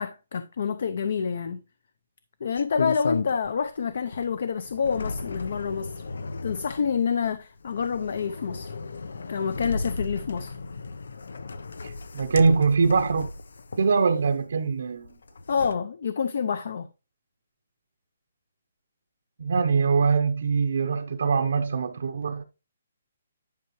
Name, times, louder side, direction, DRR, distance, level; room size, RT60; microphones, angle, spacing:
voice 1, 0.0-1.6 2.4-6.0 6.4-8.8 9.3-10.6 15.5-16.9, left 6 dB, 45° left, 0.6 m, -28 dB
sound 1, 2.6-3.7 4.1-14.4 15.0-15.7, left 3 dB, 85° left, 0.8 m, -35 dB
voice 2, 11.8-13.3 13.8-15.1 19.4-22.4, right 5 dB, 60° right, 0.8 m, -23 dB
10.5 x 5.6 x 3.1 m
hypercardioid pair, 180°, 0 cm